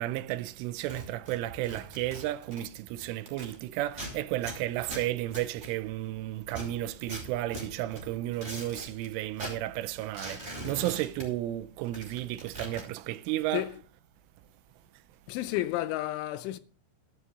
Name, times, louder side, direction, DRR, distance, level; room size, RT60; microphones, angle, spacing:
voice 1, 0.0-13.7, right 15 dB, 85° right, 3.1 m, -33 dB
sound 1, 0.8-3.6 3.9-6.1 6.5-9.1 9.3-11.6 11.8-12.8, right 1 dB, 10° right, 4.5 m, -42 dB
voice 2, 15.3-16.6, left 15 dB, 80° left, 3.0 m, -31 dB
12.5 x 12.5 x 3.6 m
omnidirectional pair, 5.7 m